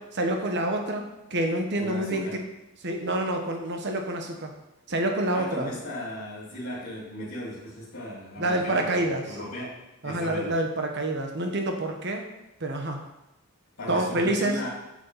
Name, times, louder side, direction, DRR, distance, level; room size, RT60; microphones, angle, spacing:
voice 1, 0.2-2.4 2.8-4.5 4.9-5.7 8.4-9.4 10.0-12.2 12.6-13.0 13.9-14.6, right 1 dB, 55° right, 4 dB, 1.1 m, -27 dB
voice 2, 1.8-2.4 5.3-10.5 13.8-14.7, left 1 dB, 65° left, -7 dB, 2.7 m, -37 dB
9.3 x 6.5 x 5.6 m, 0.95 s
head